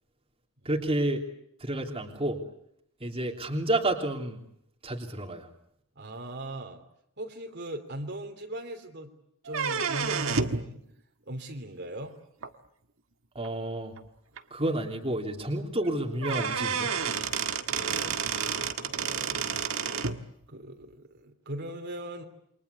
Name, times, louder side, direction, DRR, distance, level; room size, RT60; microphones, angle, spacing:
voice 1, 0.6-1.2 1.6-2.4 3.0-4.4 4.8-5.5 13.3-13.9 14.5-16.9, right 1 dB, 25° right, 1 dB, 3.2 m, -30 dB
voice 2, 5.9-6.8 7.2-9.1 9.4-10.8 11.3-12.2 17.1-18.2 18.8-19.4 20.5-22.2, right 1 dB, 50° right, 4 dB, 3.3 m, -39 dB
sound 1, 9.5-10.7 12.4-12.5 13.4-13.5 14.0-14.1 14.4-14.5 15.8-15.9 16.2-20.2, right 6 dB, 65° right, 1.7 m, -30 dB
29.0 x 24.5 x 8.3 m, 0.73 s
head